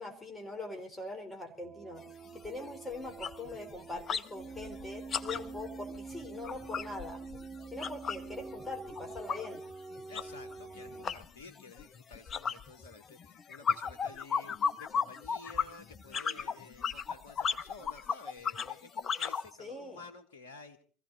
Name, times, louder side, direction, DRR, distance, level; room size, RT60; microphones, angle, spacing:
voice 1, 0.0-2.0 2.4-7.2 7.7-9.6 19.6-20.0, left 2 dB, 15° left, 5 dB, 3.8 m, -42 dB
sound 1, 1.6-11.1, right 4 dB, 25° right, 0.8 m, -46 dB
sound 2, 2.0-2.1 2.4-2.6 2.9-4.3 4.6-8.3 8.6-19.5, left 6 dB, 35° left, 0.7 m, -35 dB
voice 2, 10.1-20.8, left 4 dB, 65° left, 7 dB, 1.3 m, -52 dB
23.0 x 15.5 x 4.0 m, 0.39 s
figure-of-eight pair, 70°, 0 cm